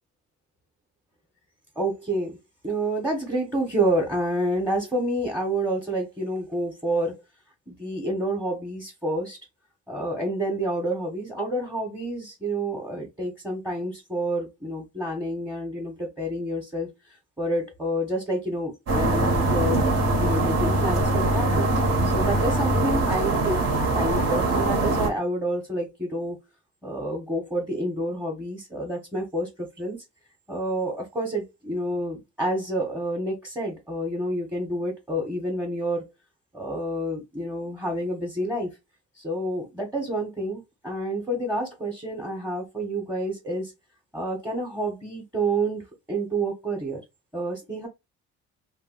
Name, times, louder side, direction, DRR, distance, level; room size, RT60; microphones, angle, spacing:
voice 1, 1.8-2.4 2.6-7.2 7.7-9.4 9.9-19.8 20.1-21.7 22.0-26.4 26.8-30.0 30.5-36.1 36.5-38.7 39.2-43.7 44.1-47.0 47.3-47.9, right 1 dB, 5° right, 1.0 m, -29 dB
sound 1, 18.9-25.1, right 2 dB, 55° right, 1.3 m, -22 dB
2.6 x 2.2 x 3.8 m
cardioid pair, 90°, 30 cm